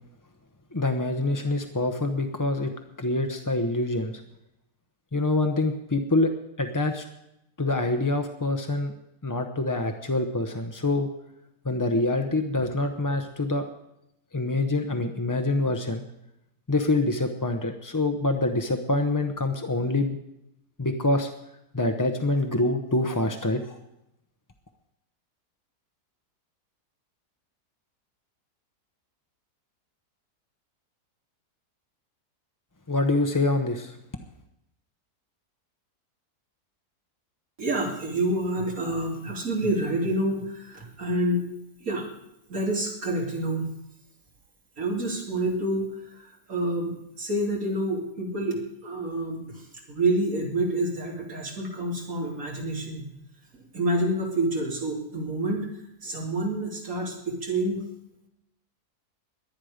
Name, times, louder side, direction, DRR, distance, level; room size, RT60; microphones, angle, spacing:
voice 1, 0.7-2.7 3.0-4.1 5.1-6.3 6.6-7.0 7.6-8.9 9.2-11.1 11.6-13.7 14.3-16.0 16.7-20.2 20.8-21.3 21.7-23.8 32.9-34.0, left 2 dB, 25° left, 6 dB, 0.4 m, -25 dB
voice 2, 37.6-41.4 41.8-42.0 42.5-43.7 44.8-53.1 53.5-55.7 56.0-57.9, right 1 dB, 55° right, -2 dB, 3.3 m, -28 dB
22.5 x 9.4 x 5.0 m, 0.85 s
omnidirectional pair, 1.7 m